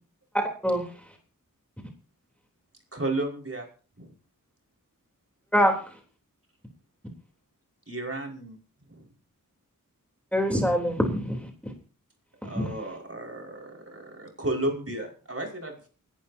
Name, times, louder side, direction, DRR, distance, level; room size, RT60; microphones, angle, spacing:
voice 1, 2.9-3.7 4.0-4.1 7.9-8.6 8.9-9.1 12.4-15.9, right 2 dB, 45° right, 0 dB, 5.3 m, -33 dB
voice 2, 10.3-11.7 12.5-12.7, equal, 5° left, 1 dB, 3.5 m, -24 dB
28.5 x 12.0 x 2.8 m, 0.39 s
wide cardioid pair, 60°, 34 cm